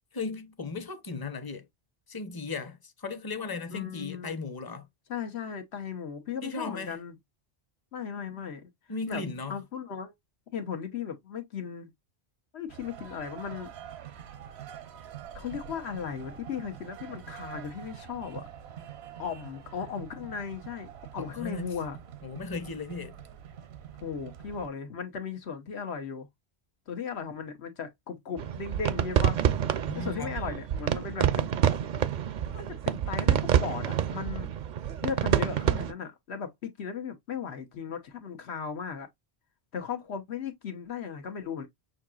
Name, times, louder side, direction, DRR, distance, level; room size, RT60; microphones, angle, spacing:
voice 1, 0.1-1.7 2.1-4.9 6.4-7.0 8.9-9.6 21.2-21.7 22.2-23.2 29.8-30.3, left 4 dB, 25° left, 0.6 m, -36 dB
voice 2, 3.7-4.4 5.1-7.1 7.9-8.7 9.1-9.2 9.5-10.1 10.5-11.9 12.5-13.7 15.3-18.4 19.2-22.0 24.0-26.3 26.9-29.4 29.9-31.5 32.5-34.5 35.0-39.1 39.7-41.7, left 6 dB, 90° left, 1.3 m, -36 dB
sound 1, 12.7-24.7, right 9 dB, 80° right, 1.0 m, -45 dB
sound 2, 28.4-35.9, right 9 dB, 55° right, 0.6 m, -27 dB
6.5 x 2.8 x 2.4 m
omnidirectional pair, 1.1 m